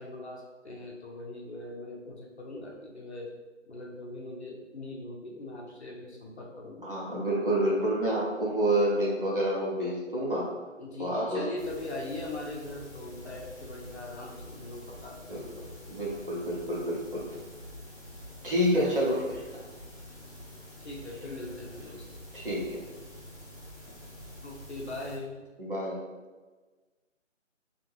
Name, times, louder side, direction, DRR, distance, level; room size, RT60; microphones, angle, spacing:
voice 1, 0.0-3.3 3.7-7.0 10.8-15.7 20.8-22.1 24.4-25.4, left 2 dB, 60° left, -2 dB, 0.7 m, -41 dB
voice 2, 6.8-10.5 11.0-11.4 15.3-15.4 15.9-17.3 18.4-19.4 22.3-22.8 25.6-26.0, equal, 45° right, -5 dB, 0.8 m, -28 dB
sound 1, 11.6-25.2, left 1 dB, 30° left, 1.0 m, -47 dB
2.6 x 2.4 x 3.0 m, 1.3 s
figure-of-eight pair, 175°, 38 cm